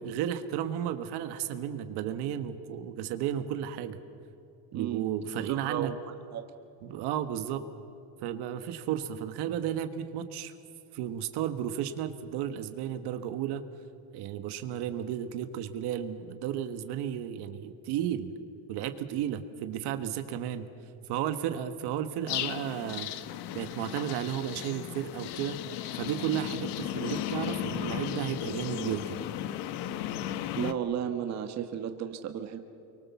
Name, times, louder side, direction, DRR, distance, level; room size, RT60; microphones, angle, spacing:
voice 1, 0.0-4.0 4.7-5.9 6.8-7.6 8.2-10.5 10.9-13.6 14.1-18.3 18.7-20.7 21.1-23.1 23.5-25.6 26.0-29.2, right 10 dB, 75° right, 9 dB, 1.6 m, -33 dB
voice 2, 4.7-5.1 5.5-6.0 6.3-6.4 30.6-32.6, right 9 dB, 40° right, 6 dB, 1.3 m, -33 dB
sound 1, 22.3-30.7, left 12 dB, 70° left, 1.1 m, -35 dB
29.5 x 24.0 x 7.2 m, 2.6 s
cardioid pair, 175°, 40 cm